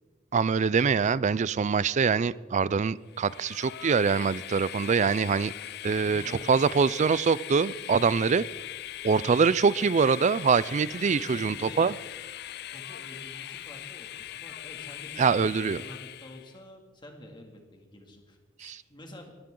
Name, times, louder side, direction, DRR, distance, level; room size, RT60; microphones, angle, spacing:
voice 1, 0.3-5.5 5.8-8.4 9.0-11.9 15.2-15.8 18.6-18.8, right 5 dB, 40° right, 19 dB, 0.4 m, -24 dB
Train, 3.1-16.6, left 12 dB, 55° left, 0.4 m, -41 dB
voice 2, 5.8-6.9 10.9-11.9 12.7-19.4, left 1 dB, 25° left, 2 dB, 2.5 m, -48 dB
22.5 x 15.0 x 3.8 m, 1.4 s
head